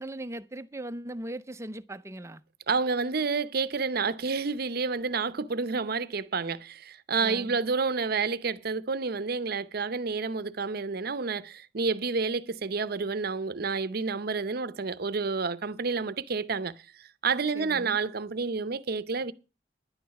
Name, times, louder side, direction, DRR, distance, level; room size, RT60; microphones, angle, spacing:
voice 1, 0.0-2.4 7.2-7.6 17.5-18.0, right 1 dB, 15° right, 0.5 m, -39 dB
voice 2, 2.7-19.3, right 4 dB, 55° right, 0.7 m, -29 dB
10.5 x 9.4 x 5.9 m
head